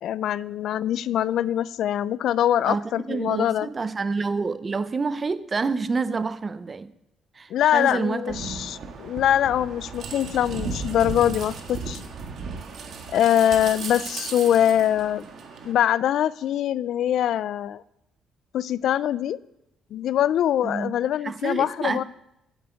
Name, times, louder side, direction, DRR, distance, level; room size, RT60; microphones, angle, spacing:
voice 1, 0.0-3.7 7.5-12.0 13.1-15.2 15.6-17.8 18.5-19.4 19.9-22.0, left 11 dB, 65° left, 0.3 m, -23 dB
voice 2, 2.7-6.9 7.4-8.8 20.6-20.9 21.2-22.0, right 4 dB, 25° right, 0.5 m, -28 dB
sound 1, 8.3-15.7, right 4 dB, 55° right, 1.6 m, -35 dB
7.9 x 7.8 x 8.2 m
cardioid pair, 140°, 0 cm